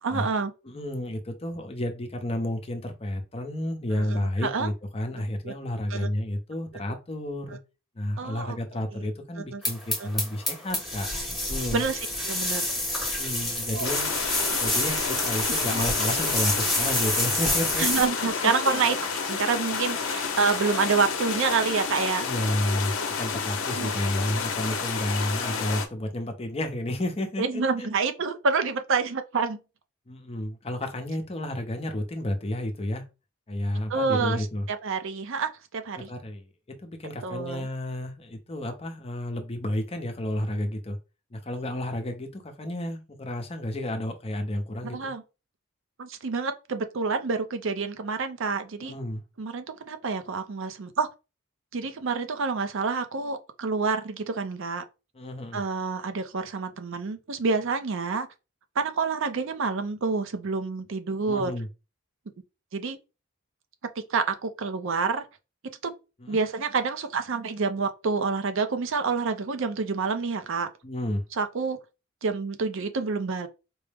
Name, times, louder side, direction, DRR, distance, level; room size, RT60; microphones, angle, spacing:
voice 1, 0.0-0.5 4.0-4.7 5.4-5.5 5.9-6.1 8.2-8.6 8.9-9.1 9.5-9.6 10.0-10.1 11.7-12.7 13.7-13.9 15.7-15.8 17.8-22.3 23.8-23.9 27.4-29.6 33.9-36.1 37.2-37.7 44.9-45.2 46.0-48.9 49.4-51.1 51.7-54.8 55.5-58.3 58.8-61.5 62.7-63.0 64.1-65.2 65.8-65.9 66.3-70.7 71.4-71.8 72.2-73.5, right 4 dB, 65° right, 0.5 m, -28 dB
voice 2, 0.6-7.6 8.0-11.1 11.5-11.8 13.2-14.1 14.6-17.9 18.4-18.8 22.2-27.9 30.1-33.0 33.5-34.7 36.0-36.5 36.8-41.0 41.3-45.1 48.8-49.2 55.1-55.6 61.3-61.7 66.2-66.4 70.8-71.2, left 1 dB, 30° left, 0.7 m, -31 dB
sound 1, 9.6-18.1, left 1 dB, ahead, 1.0 m, -28 dB
sound 2, 13.8-25.9, left 5 dB, 70° left, 0.7 m, -30 dB
4.5 x 2.1 x 3.4 m
head